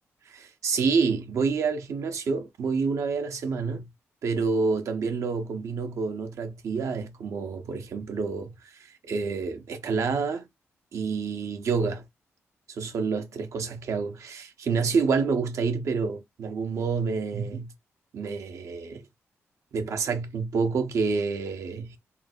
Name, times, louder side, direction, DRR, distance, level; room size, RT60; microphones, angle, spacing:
voice 1, 0.3-3.9 4.2-8.5 9.0-10.5 10.9-12.0 12.7-17.7 18.1-19.0 19.7-22.0, right 5 dB, 75° right, 1.0 m, -28 dB
3.7 x 2.4 x 4.4 m
cardioid pair, 75°, 5 cm